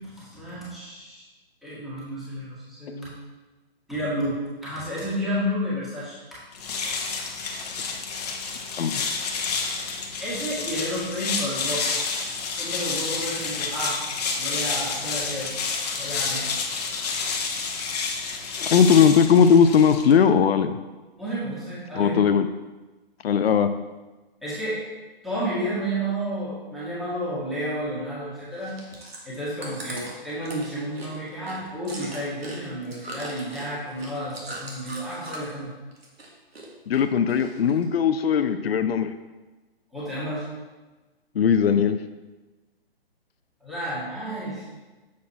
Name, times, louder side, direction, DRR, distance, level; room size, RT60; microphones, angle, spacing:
voice 1, 0.2-1.2 1.6-3.1 3.9-6.4 10.2-12.0 12.5-14.0 14.4-15.5 15.9-16.4 21.2-22.1 24.4-24.8 25.2-28.7 29.2-35.7 39.9-40.4 43.6-44.6, equal, ahead, -10 dB, 1.7 m, -31 dB
sound 1, 6.5-20.2, left 5 dB, 40° left, 0.9 m, -29 dB
voice 2, 8.8-9.3 18.6-20.7 21.9-22.5 23.2-23.7 36.9-39.1 41.4-42.0, left 7 dB, 75° left, 9 dB, 0.5 m, -19 dB
Chewing mastication, 28.5-35.6 35.9-36.7 36.9-37.8 38.3-38.4, right 2 dB, 75° right, 1.7 m, -40 dB
7.3 x 4.3 x 4.2 m, 1.2 s
figure-of-eight pair, 135°, 30 cm